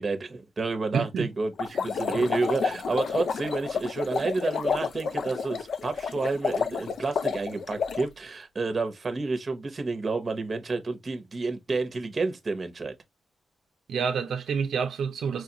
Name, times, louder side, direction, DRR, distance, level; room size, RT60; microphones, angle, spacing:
voice 1, 0.0-12.9, right 3 dB, 35° right, 0.8 m, -30 dB
voice 2, 0.9-1.3 2.1-2.3 13.9-15.4, right 6 dB, 85° right, 0.5 m, -28 dB
sound 1, 1.6-8.1, left 5 dB, 65° left, 0.5 m, -30 dB
4.6 x 2.4 x 2.8 m
wide cardioid pair, 110°, 0 cm